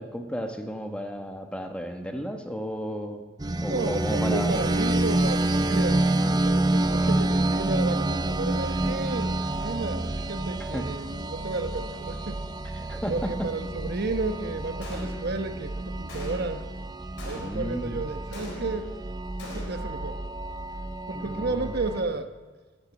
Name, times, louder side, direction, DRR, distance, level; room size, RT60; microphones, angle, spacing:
voice 1, 0.0-3.2 3.6-4.6 10.7-10.9 12.7-13.5 17.3-18.0 21.1-21.7, equal, 5° left, 5 dB, 1.2 m, -33 dB
sound 1, 3.4-22.0, right 2 dB, 20° right, 0.6 m, -28 dB
voice 2, 3.7-12.4 13.1-16.6 17.3-18.9 19.4-20.2 21.1-22.3, right 3 dB, 55° right, 8 dB, 1.1 m, -32 dB
Gunshot gunfire, 14.8-15.5 16.1-16.7 17.2-17.8 18.3-19.0 19.4-20.0, left 2 dB, 60° left, 4.3 m, -42 dB
12.0 x 11.5 x 8.6 m, 1.3 s
head